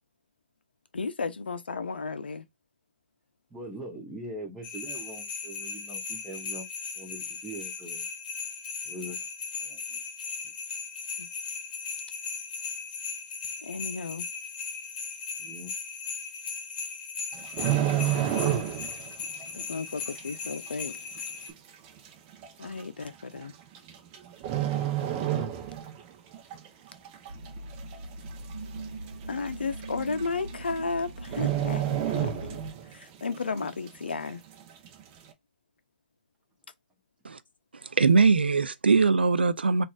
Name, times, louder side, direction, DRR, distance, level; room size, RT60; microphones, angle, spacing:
voice 1, 0.9-2.5 11.2-11.3 13.6-14.2 19.5-21.0 22.6-23.5 29.3-32.6 32.9-34.4, left 4 dB, 85° left, 0.5 m, -34 dB
voice 2, 3.5-6.7 6.9-8.1 8.8-9.2 9.6-10.0 15.4-15.7, right 1 dB, 10° right, 1.0 m, -42 dB
sound 1, 4.6-21.5, left 5 dB, 50° left, 0.9 m, -37 dB
sound 2, 17.3-19.1 19.3-19.6 20.2-20.3 21.2-21.3 21.5-21.6 22.4-22.6 23.7-24.1 24.4-26.0 26.3-26.6 27.0-27.6 27.9-28.0 28.2-28.3 28.8-28.9 29.8-29.9 30.2-30.5 30.8-30.9 31.3-32.9 33.3-33.4, right 11 dB, 30° right, 0.7 m, -28 dB
sound 3, 27.3-32.7, right 2 dB, 55° right, 0.9 m, -41 dB
voice 3, 37.9-39.8, right 4 dB, 90° right, 0.4 m, -21 dB
3.9 x 2.4 x 2.4 m
hypercardioid pair, 135°, 5 cm